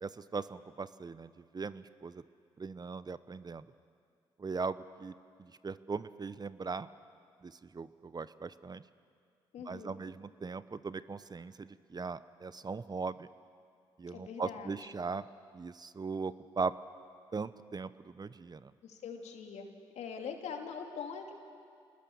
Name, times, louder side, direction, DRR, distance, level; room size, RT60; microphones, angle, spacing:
voice 1, 0.0-2.2 2.6-3.7 4.4-5.1 5.4-6.9 7.4-8.8 9.7-13.3 14.0-15.2 15.5-16.7 17.3-18.7, right 4 dB, 35° right, 15 dB, 0.8 m, -39 dB
voice 2, 9.5-10.0 14.1-14.7 18.8-19.7 20.0-21.3, left 6 dB, 70° left, 4 dB, 2.7 m, -42 dB
27.0 x 20.5 x 7.3 m, 2.3 s
hypercardioid pair, 45°, 12 cm